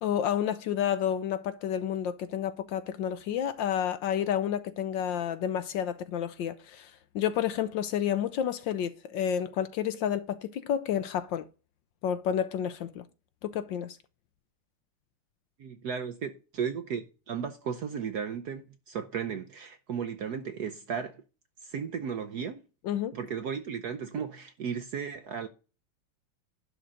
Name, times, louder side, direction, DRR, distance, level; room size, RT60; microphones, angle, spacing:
voice 1, 0.0-11.5 12.0-13.0 13.4-14.0 22.8-23.2, left 9 dB, 70° left, 1.2 m, -30 dB
voice 2, 15.6-21.2 21.6-22.6 23.1-25.5, right 7 dB, 65° right, 1.0 m, -35 dB
11.0 x 3.8 x 7.5 m
omnidirectional pair, 2.4 m